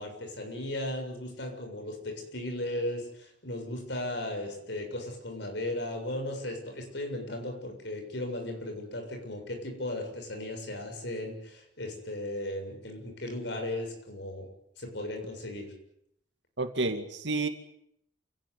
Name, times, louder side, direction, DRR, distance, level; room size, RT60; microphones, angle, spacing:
voice 1, 0.0-14.5 14.8-15.8, left 1 dB, 65° left, 4 dB, 7.2 m, -36 dB
voice 2, 16.6-17.5, right 3 dB, 70° right, 7 dB, 2.4 m, -30 dB
28.5 x 18.0 x 9.8 m, 0.76 s
head